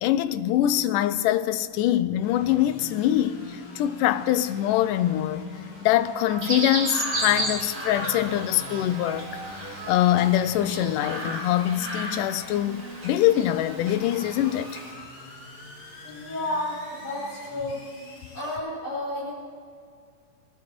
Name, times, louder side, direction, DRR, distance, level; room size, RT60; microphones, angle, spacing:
voice 1, 0.0-5.5 5.9-9.4 9.9-14.8, left 12 dB, 85° left, 2.2 m, -24 dB
sound 1, 2.2-18.6, left 3 dB, 45° left, 3.0 m, -44 dB
sound 2, 6.3-11.3, right 4 dB, 85° right, 3.8 m, -42 dB
Chirp tweet, 6.4-14.9, right 1 dB, 35° right, 3.9 m, -34 dB
voice 2, 16.0-17.8 18.3-19.3, left 1 dB, 65° left, 6.4 m, -31 dB
21.5 x 11.5 x 4.4 m
omnidirectional pair, 3.7 m